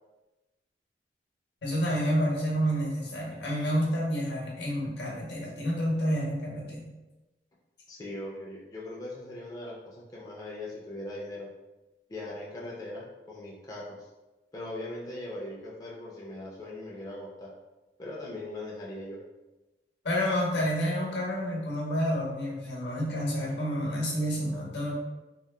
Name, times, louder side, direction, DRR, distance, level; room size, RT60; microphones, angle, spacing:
voice 1, 1.6-6.9 20.0-24.9, equal, 80° left, -3 dB, 0.7 m, -29 dB
voice 2, 7.9-11.5 12.1-14.1 14.5-17.5 18.0-19.2, left 1 dB, 20° left, -5 dB, 0.3 m, -40 dB
2.8 x 2.1 x 2.2 m, 1.1 s
head